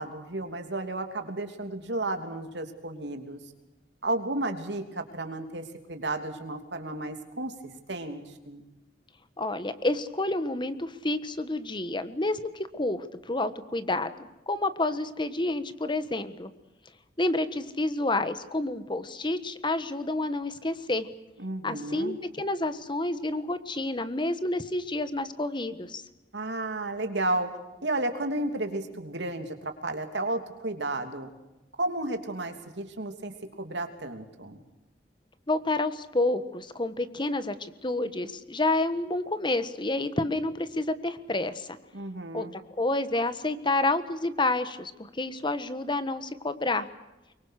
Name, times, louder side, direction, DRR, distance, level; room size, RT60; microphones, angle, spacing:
voice 1, 0.0-3.4 4.0-7.5 7.9-8.6 21.4-22.2 26.3-27.5 27.8-31.3 31.8-34.6 41.9-42.5, right 2 dB, 85° right, 6 dB, 3.1 m, -33 dB
voice 2, 9.4-16.5 17.2-21.1 21.6-26.0 35.5-41.8 42.3-46.9, left 2 dB, 25° left, 12 dB, 1.4 m, -29 dB
25.0 x 23.0 x 6.6 m, 0.99 s
head